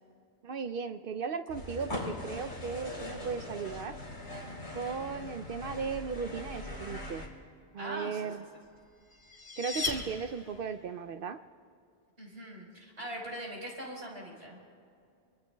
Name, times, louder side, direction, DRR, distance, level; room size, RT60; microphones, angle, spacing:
voice 1, 0.4-3.9 4.7-7.2 7.7-8.4 9.6-11.4, right 5 dB, 65° right, 9 dB, 0.7 m, -36 dB
sound 1, 1.5-7.3, left 1 dB, 80° left, 3.0 m, -41 dB
voice 2, 4.8-5.4 7.8-8.3 12.2-14.6, right 1 dB, 85° right, -2 dB, 4.6 m, -42 dB
sound 2, 8.8-10.8, left 3 dB, 55° left, 1.7 m, -37 dB
26.0 x 23.5 x 2.2 m, 2.4 s
omnidirectional pair, 1.1 m